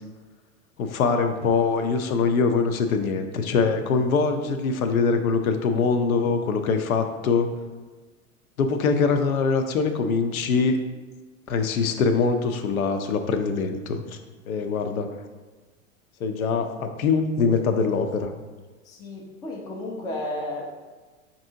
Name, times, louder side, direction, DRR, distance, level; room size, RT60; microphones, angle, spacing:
voice 1, 0.8-7.5 8.6-10.8 11.5-14.2 14.5-15.2 16.2-18.3, left 4 dB, 85° left, 7 dB, 0.5 m, -23 dB
voice 2, 18.8-20.7, left 1 dB, 10° left, -1 dB, 0.3 m, -33 dB
5.3 x 2.6 x 2.7 m, 1.3 s
hypercardioid pair, 100°, 41 cm